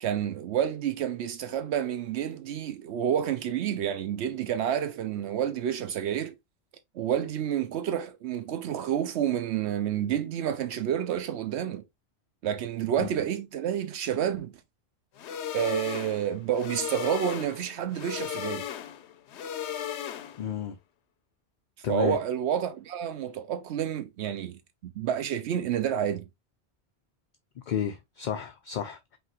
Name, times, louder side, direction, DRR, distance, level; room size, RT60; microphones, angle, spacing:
voice 1, 0.0-6.3 6.9-11.8 12.4-14.5 15.5-18.7 21.9-26.3, right 9 dB, 80° right, 0.9 m, -29 dB
sound 1, 15.2-20.6, left 10 dB, 85° left, 0.9 m, -36 dB
voice 2, 20.4-20.8 21.8-22.2 27.7-29.2, left 9 dB, 55° left, 0.6 m, -32 dB
5.2 x 3.1 x 2.8 m
omnidirectional pair, 1.1 m